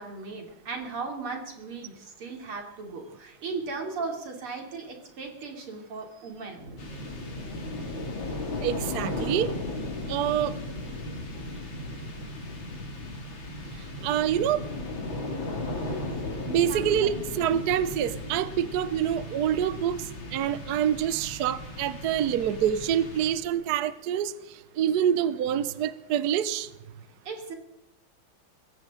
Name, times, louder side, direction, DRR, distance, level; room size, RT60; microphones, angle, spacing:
voice 1, 0.0-6.6 15.8-16.2 16.7-17.2 27.3-27.5, right 4 dB, 90° right, 2 dB, 3.9 m, -37 dB
sound 1, 6.6-22.5, right 1 dB, 40° right, 8.4 m, -49 dB
sound 2, 6.8-23.7, left 2 dB, 65° left, 3.3 m, -36 dB
voice 2, 8.6-9.5 10.1-10.5 14.0-14.6 16.5-20.0 20.3-24.3 24.8-26.7, right 9 dB, 60° right, 15 dB, 1.1 m, -26 dB
21.5 x 16.0 x 3.8 m, 0.89 s
omnidirectional pair, 2.3 m